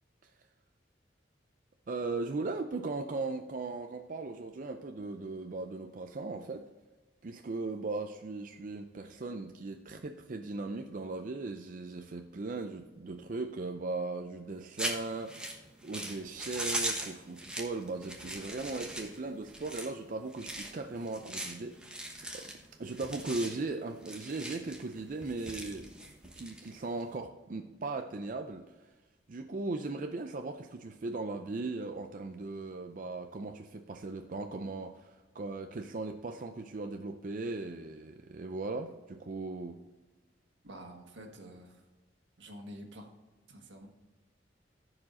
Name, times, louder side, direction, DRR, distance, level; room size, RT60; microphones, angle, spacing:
voice 1, 1.9-6.7 7.2-15.5 15.8-22.5 22.8-25.9 26.4-28.9 29.3-39.8, right 3 dB, 45° right, 5 dB, 0.5 m, -38 dB
sound 1, 14.8-27.1, right 1 dB, 5° right, 1.1 m, -40 dB
voice 2, 40.6-41.8 42.4-43.1 43.5-43.9, equal, 80° right, 3 dB, 1.5 m, -48 dB
14.5 x 4.9 x 3.7 m, 1.2 s
head